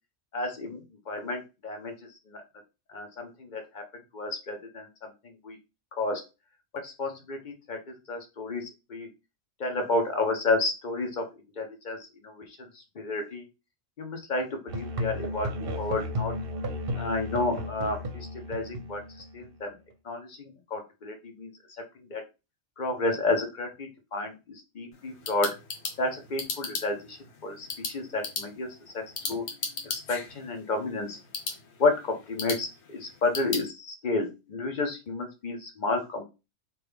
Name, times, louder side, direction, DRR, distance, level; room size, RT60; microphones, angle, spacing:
voice 1, 0.3-1.9 2.3-2.4 2.9-3.8 4.1-4.9 5.4-5.6 6.0-6.2 6.8-7.8 8.1-9.1 9.6-11.2 11.6-12.0 12.2-12.5 13.0-13.4 14.0-15.5 15.8-16.3 17.0-19.0 19.3-19.7 20.1-21.5 22.1-22.2 22.8-24.3 24.8-25.5 26.0-27.2 27.4-28.7 28.9-29.0 29.3-29.4 29.8-31.2 31.8-36.2, left 3 dB, 50° left, 4 dB, 0.7 m, -31 dB
Musical instrument, 14.7-19.5, left 1 dB, 60° right, 0.8 m, -34 dB
sound 1, 24.9-33.7, left 4 dB, 70° left, 1.0 m, -38 dB
3.0 x 2.2 x 3.4 m, 0.27 s
omnidirectional pair, 1.2 m